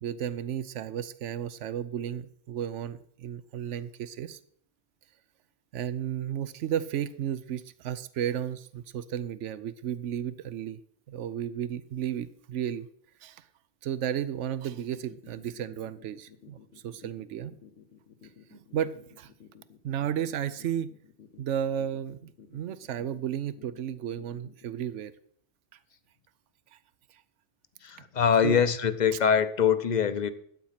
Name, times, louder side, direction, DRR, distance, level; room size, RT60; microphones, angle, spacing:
voice 1, 0.0-4.4 5.7-10.8 11.1-12.9 13.2-13.5 13.8-16.6 16.8-17.6 18.5-19.3 19.8-20.9 21.4-25.1 26.7-26.8 27.1-27.2 28.4-28.6, right 9 dB, 85° right, 15 dB, 1.0 m, -33 dB
sound 1, 14.7-24.7, left 8 dB, 80° left, 1.4 m, -54 dB
voice 2, 27.8-30.3, left 7 dB, 45° left, 12 dB, 0.8 m, -24 dB
12.0 x 8.4 x 5.8 m, 0.63 s
omnidirectional pair, 1.2 m